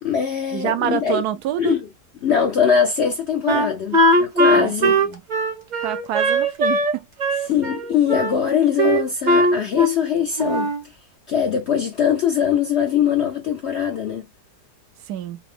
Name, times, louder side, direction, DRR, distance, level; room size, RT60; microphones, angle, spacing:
voice 1, 0.0-1.2 1.6-1.9 2.2-5.0 7.5-10.7 11.3-14.3, left 7 dB, 65° left, 0.6 m, -21 dB
voice 2, 0.5-1.8 4.5-5.2 5.8-7.1 15.0-15.4, right 11 dB, 75° right, 1.1 m, -27 dB
Wind instrument woodwind instrument, 3.5-6.9 7.2-8.3 8.8-10.1 10.4-10.9, right 1 dB, 40° right, 0.6 m, -19 dB
5.0 x 2.0 x 3.2 m
omnidirectional pair, 1.7 m